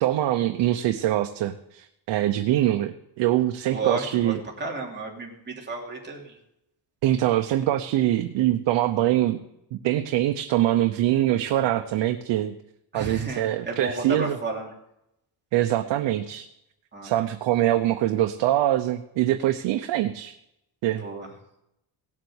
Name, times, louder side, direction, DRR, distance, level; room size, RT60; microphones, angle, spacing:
voice 1, 0.0-4.4 7.0-9.4 9.7-12.6 12.9-14.4 15.5-16.5 17.0-20.3 20.8-21.0, right 13 dB, 90° right, 7 dB, 0.9 m, -23 dB
voice 2, 3.7-6.4 12.9-14.7 16.9-17.1 21.0-21.3, right 3 dB, 25° right, -1 dB, 3.1 m, -32 dB
17.0 x 7.6 x 7.9 m, 0.84 s
cardioid pair, 130°, 42 cm